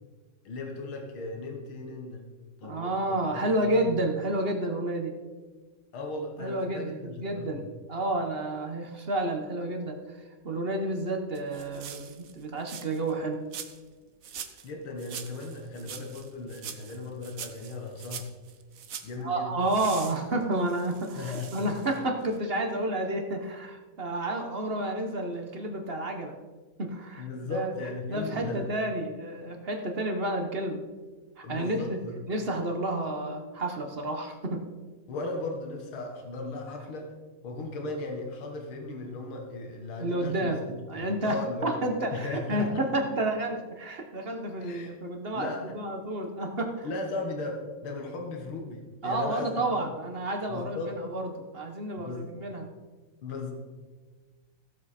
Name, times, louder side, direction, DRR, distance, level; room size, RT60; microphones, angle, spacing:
voice 1, 0.4-2.3 2.6-4.0 5.9-7.7 14.3-18.3 19.0-19.6 21.2-21.7 27.2-28.6 30.0-30.1 31.4-32.2 35.1-37.1 37.4-41.7 42.1-42.8 44.6-44.9 45.3-45.7 46.8-49.9 50.5-50.9 52.0-52.3 53.2-53.5, left 2 dB, 75° left, 2 dB, 2.3 m, -37 dB
voice 2, 2.6-5.1 6.4-13.4 19.2-26.4 26.8-27.7 28.1-30.8 31.4-32.0 32.3-34.6 40.0-40.6 40.9-46.9 49.0-52.7, right 1 dB, 35° right, 4 dB, 1.1 m, -30 dB
sound 1, 11.3-13.1 13.5-13.9 14.2-14.7 15.0-19.1 19.7-22.0 22.3-22.4, right 8 dB, 60° right, 0.9 m, -43 dB
16.0 x 7.4 x 4.3 m, 1.3 s
omnidirectional pair, 2.3 m